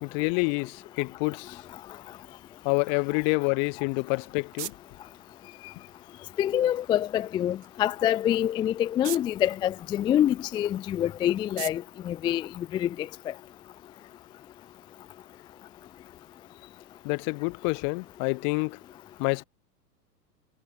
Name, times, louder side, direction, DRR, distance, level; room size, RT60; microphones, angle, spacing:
voice 1, 0.0-1.6 2.6-4.7 17.0-18.8 19.2-19.4, left 40 dB or more, 40° left, 1.0 m, -27 dB
sound 1, 3.8-13.2, right 12 dB, 70° right, 4.3 m, -46 dB
voice 2, 6.4-13.1, left 11 dB, 10° left, 0.4 m, -26 dB
hypercardioid pair, 105°, 49 cm